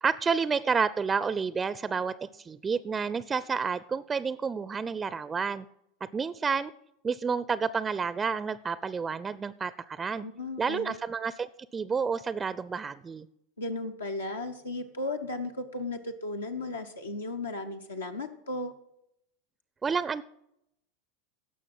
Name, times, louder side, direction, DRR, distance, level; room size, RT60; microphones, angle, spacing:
voice 1, 0.0-5.7 6.0-6.7 7.0-10.3 10.6-13.3 19.8-20.2, right 5 dB, 20° right, 17 dB, 0.4 m, -30 dB
voice 2, 10.2-11.0 13.6-18.7, left 2 dB, 80° left, 4 dB, 0.9 m, -35 dB
16.5 x 6.3 x 6.0 m, 0.78 s
figure-of-eight pair, 80°, 0 cm